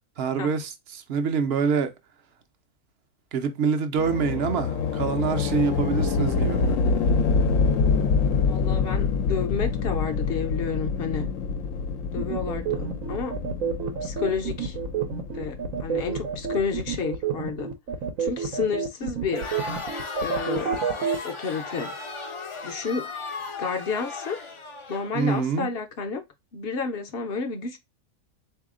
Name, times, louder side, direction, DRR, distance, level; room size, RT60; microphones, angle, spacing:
voice 1, 0.2-1.9 3.3-6.8 25.1-25.7, right 6 dB, 55° right, 0.8 m, -26 dB
sound 1, 4.0-17.0, left 5 dB, 80° left, 1.0 m, -26 dB
voice 2, 8.5-11.3 12.1-13.3 14.0-14.8 15.3-17.7 18.2-19.4 20.2-20.8 21.2-21.9 22.6-23.1 23.6-24.4 24.9-26.2 26.5-27.8, left 5 dB, 55° left, 0.8 m, -30 dB
sound 2, 12.2-21.2, right 7 dB, 90° right, 1.1 m, -28 dB
Crowd, 19.3-25.5, left 3 dB, 35° left, 0.5 m, -36 dB
3.9 x 2.8 x 3.6 m
omnidirectional pair, 1.4 m